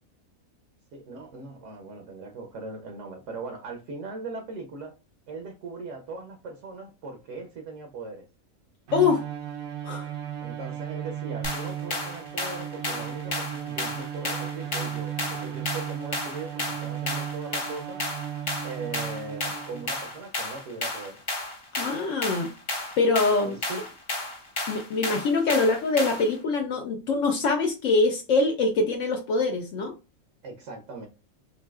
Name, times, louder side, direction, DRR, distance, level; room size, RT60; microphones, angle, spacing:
voice 1, 0.9-5.0 5.3-8.2 10.4-18.0 18.6-21.2 23.4-23.8 30.4-31.1, right 3 dB, 65° right, 1.0 m, -39 dB
voice 2, 8.9-9.2 9.8-10.1 21.8-22.5 23.0-23.6 24.7-29.9, left 3 dB, 70° left, 0.9 m, -24 dB
Bowed string instrument, 8.9-20.1, right 10 dB, 80° right, 1.2 m, -35 dB
sound 1, 11.4-26.3, left 2 dB, 30° left, 0.7 m, -33 dB
3.9 x 2.6 x 2.3 m
omnidirectional pair, 1.4 m